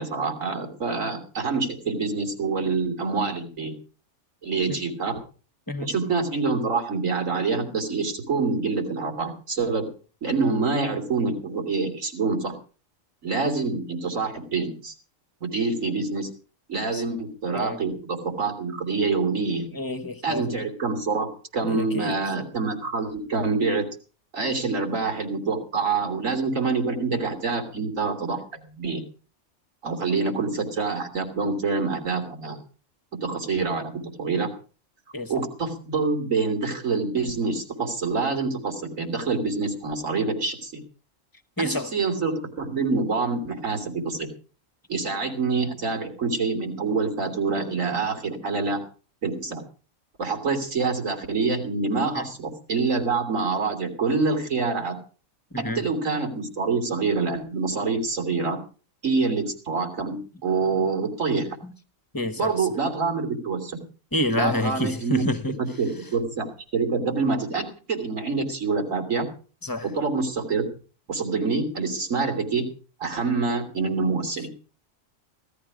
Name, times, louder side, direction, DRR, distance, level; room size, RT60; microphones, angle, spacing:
voice 1, 0.0-3.7 4.4-5.2 5.8-9.9 10.2-12.5 13.2-14.9 15.4-16.3 16.7-19.7 20.2-23.8 24.3-29.0 29.8-32.6 33.1-34.5 35.3-40.8 41.6-44.3 44.9-48.8 49.2-49.6 50.2-54.9 55.6-58.6 59.0-61.5 62.4-63.8 64.4-65.3 65.6-69.3 69.8-70.7 71.1-72.7 73.0-74.5, right 4 dB, 80° right, 3.5 m, -26 dB
voice 2, 19.7-20.6 21.6-22.2 35.1-35.3 41.6-41.9 52.1-52.3 55.5-55.8 61.6-61.7 62.1-62.7 64.1-65.5 69.6-69.9, left 1 dB, 15° left, 1.2 m, -28 dB
17.0 x 13.0 x 5.0 m
omnidirectional pair, 1.3 m